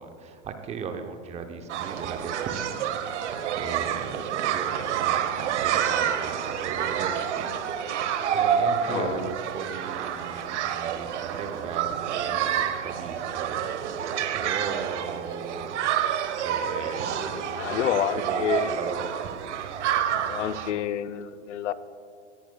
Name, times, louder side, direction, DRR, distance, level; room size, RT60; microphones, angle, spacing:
voice 1, 0.0-2.8 3.1-7.5 8.3-15.8 16.4-19.4, right 6 dB, 20° right, 7 dB, 0.6 m, -37 dB
sound 1, 1.7-20.7, right 9 dB, 70° right, 1.0 m, -28 dB
voice 2, 8.8-9.3 17.5-18.7 20.3-21.7, left 10 dB, 70° left, 14 dB, 0.6 m, -29 dB
18.5 x 10.0 x 2.3 m, 2.4 s
hypercardioid pair, 125°, 37 cm